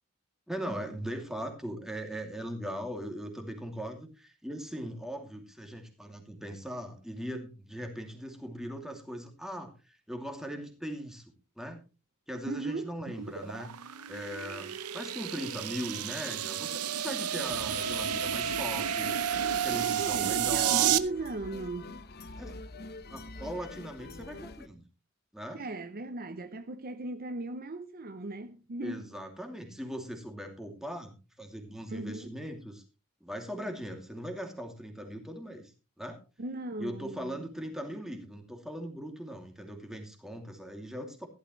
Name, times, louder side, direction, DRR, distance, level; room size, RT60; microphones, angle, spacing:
voice 1, 0.5-11.2 11.6-11.8 12.3-13.7 14.1-19.2 19.6-20.9 22.4-22.6 23.1-24.8 25.3-25.6 28.8-32.8 33.2-35.7 36.0-36.2 36.8-41.3, equal, ahead, 2.6 m, -39 dB
voice 2, 12.5-12.9 20.0-21.9 25.5-29.1 31.9-32.4 36.4-37.4, right 2 dB, 40° right, 0.7 m, -37 dB
sound 1, 13.0-21.0, right 9 dB, 90° right, 0.8 m, -31 dB
sound 2, 17.4-24.7, left 2 dB, 45° left, 0.9 m, -46 dB
15.5 x 12.0 x 3.1 m
head